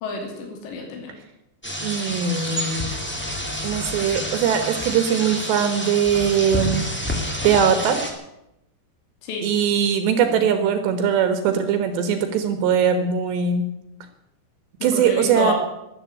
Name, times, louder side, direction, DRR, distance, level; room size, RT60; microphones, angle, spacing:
voice 1, 0.0-1.1 9.2-9.5 14.8-15.5, left 4 dB, 70° left, 1 dB, 4.9 m, -29 dB
sound 1, 1.6-8.1, left 1 dB, 10° left, 0.7 m, -28 dB
voice 2, 1.8-2.9 3.6-6.8 7.4-8.0 9.4-13.7 14.8-15.5, right 7 dB, 75° right, 8 dB, 3.3 m, -21 dB
13.0 x 11.0 x 9.6 m, 0.87 s
omnidirectional pair, 5.2 m